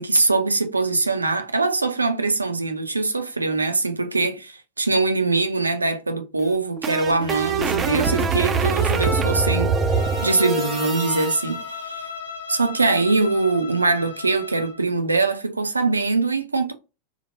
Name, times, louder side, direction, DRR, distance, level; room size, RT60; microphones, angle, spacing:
voice 1, 0.0-12.1 12.5-16.7, right 3 dB, 80° right, 0.4 m, -22 dB
sound 1, 6.4-11.4, right 4 dB, 20° right, 0.4 m, -23 dB
Bowed string instrument, 9.9-14.8, left 6 dB, 75° left, 0.7 m, -36 dB
3.0 x 2.0 x 2.8 m
figure-of-eight pair, 90°, 0 cm